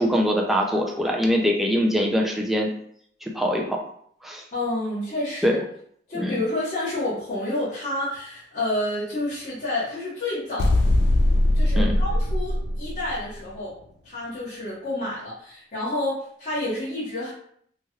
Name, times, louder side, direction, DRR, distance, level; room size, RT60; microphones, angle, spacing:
voice 1, 0.0-2.7 3.2-3.8 4.2-4.4 5.4-5.6 6.1-6.4 11.8-11.9, equal, ahead, 0 dB, 0.4 m, -23 dB
voice 2, 4.5-5.6 6.1-10.8 11.5-13.7 14.0-17.3, left 1 dB, 40° left, -11 dB, 1.1 m, -29 dB
sound 1, 10.6-13.3, left 1 dB, 70° left, 0.4 m, -21 dB
3.1 x 2.9 x 2.3 m, 0.65 s
head